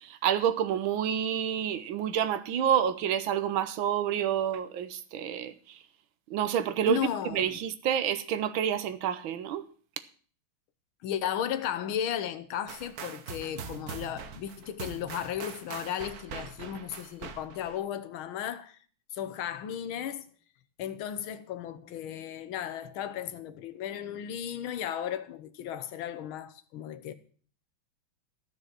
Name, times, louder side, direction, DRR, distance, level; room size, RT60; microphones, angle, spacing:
voice 1, 0.2-5.5 6.3-7.0 7.3-9.6, right 9 dB, 75° right, 1.6 m, -28 dB
voice 2, 6.9-7.6 11.0-18.8 19.1-20.3 20.8-27.1, left 10 dB, 80° left, 1.7 m, -35 dB
sound 1, 12.7-17.8, right 6 dB, 55° right, 1.3 m, -42 dB
12.5 x 6.5 x 7.4 m
omnidirectional pair, 2.3 m